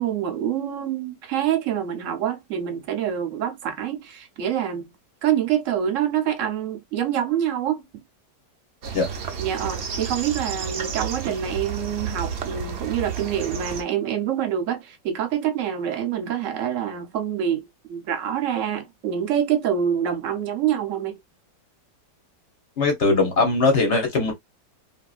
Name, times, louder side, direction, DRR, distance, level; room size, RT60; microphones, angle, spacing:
voice 1, 0.0-4.9 5.2-8.0 9.4-21.2, right 9 dB, 60° right, 0.8 m, -26 dB
sound 1, 8.8-13.8, right 6 dB, 90° right, 0.5 m, -31 dB
voice 2, 22.8-24.3, left 3 dB, 50° left, 0.9 m, -20 dB
2.8 x 2.6 x 2.3 m
omnidirectional pair, 1.9 m